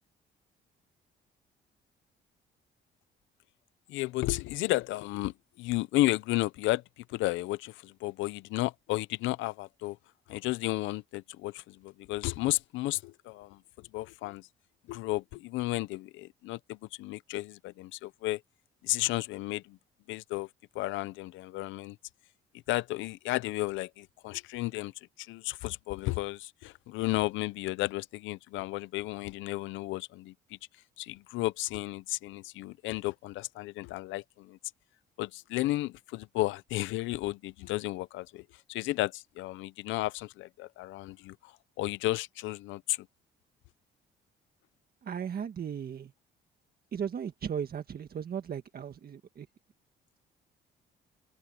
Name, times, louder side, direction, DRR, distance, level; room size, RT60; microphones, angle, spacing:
voice 1, 3.9-10.0 10.3-14.5 14.9-18.4 18.8-19.8 20.1-20.5 20.7-22.0 22.7-24.9 25.2-30.3 31.0-34.6 35.2-43.1, left 18 dB, 85° left, 0.7 m, -33 dB
voice 2, 45.0-46.1 46.9-49.5, right 8 dB, 50° right, 1.7 m, -36 dB
cardioid pair, 75°, 19 cm